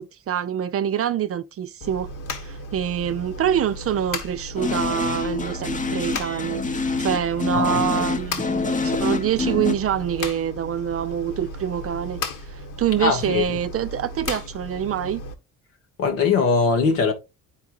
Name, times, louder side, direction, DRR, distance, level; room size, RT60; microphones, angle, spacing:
voice 1, 0.0-2.1 2.4-12.2 12.8-15.2, right 9 dB, 35° right, 0.6 m, -25 dB
sound 1, 1.8-15.3, left 1 dB, 55° left, 1.5 m, -35 dB
sound 2, 4.6-9.7, left 4 dB, 20° left, 0.8 m, -26 dB
voice 2, 13.0-13.6 16.0-17.1, left 5 dB, 80° left, 1.3 m, -21 dB
10.5 x 4.5 x 2.5 m
hypercardioid pair, 50°, 39 cm